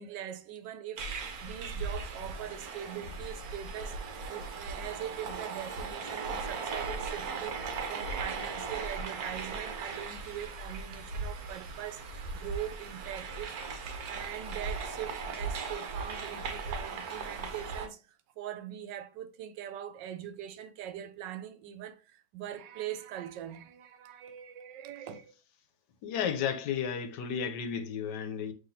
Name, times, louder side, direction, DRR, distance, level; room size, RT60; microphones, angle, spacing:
voice 1, 0.0-13.5 14.1-18.0 18.4-25.3, right 11 dB, 90° right, 1.3 m, -42 dB
sound 1, 1.0-17.9, right 4 dB, 65° right, 1.2 m, -38 dB
voice 2, 26.0-28.5, left 7 dB, 75° left, 1.3 m, -33 dB
5.7 x 3.2 x 2.7 m
omnidirectional pair, 1.9 m